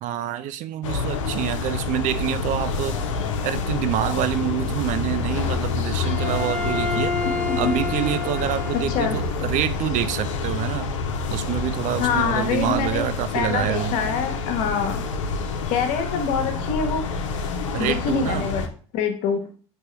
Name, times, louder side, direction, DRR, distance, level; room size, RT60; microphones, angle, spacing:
voice 1, 0.0-3.0 3.4-7.2 7.6-10.9 11.3-14.0 17.7-18.5, right 12 dB, 55° right, 0.4 m, -27 dB
sound 1, 0.8-18.7, left 4 dB, 90° left, 0.5 m, -27 dB
Bowed string instrument, 6.0-9.4, left 3 dB, 15° left, 1.2 m, -29 dB
voice 2, 7.5-8.1 8.9-9.2 12.0-13.1 13.3-15.0 15.7-17.0 17.8-18.7 18.9-19.4, left 6 dB, 65° left, 0.9 m, -25 dB
4.5 x 2.9 x 3.2 m
hypercardioid pair, 80°, 16 cm